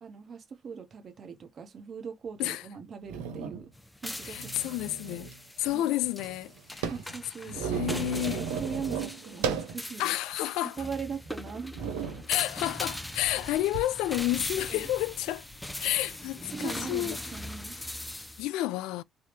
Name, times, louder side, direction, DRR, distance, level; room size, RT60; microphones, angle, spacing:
voice 1, 0.0-3.7 4.0-4.5 5.7-5.9 6.9-7.7 8.4-10.1 10.6-11.7 14.7-14.9 16.5-17.8, right 6 dB, 50° right, 1.2 m, -40 dB
sound 1, 2.4-2.5 3.1-3.6 4.3-5.4 5.6-5.7 6.0-9.8 10.3-10.4 11.1-11.3 11.7-12.3 13.2-13.8, right 6 dB, 85° right, 0.8 m, -34 dB
sound 2, 3.7-18.5, left 1 dB, 10° left, 0.7 m, -41 dB
voice 2, 4.2-5.3 5.6-6.9 7.5-8.4 10.0-10.8 12.3-15.5 15.8-17.2 18.4-19.0, left 15 dB, 75° left, 0.3 m, -30 dB
3.5 x 2.7 x 3.2 m
hypercardioid pair, 55°, 0 cm